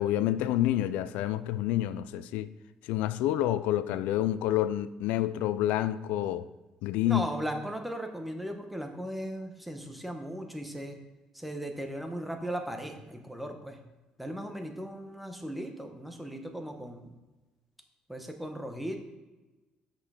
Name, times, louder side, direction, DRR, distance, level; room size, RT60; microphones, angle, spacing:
voice 1, 0.0-2.5 2.8-6.5 6.8-7.3, left 13 dB, 90° left, 0.3 m, -28 dB
voice 2, 7.0-11.0 11.3-13.8 14.2-17.1 18.1-19.0, equal, 5° right, 1.0 m, -37 dB
6.3 x 5.6 x 5.0 m
cardioid pair, 125°, 2 cm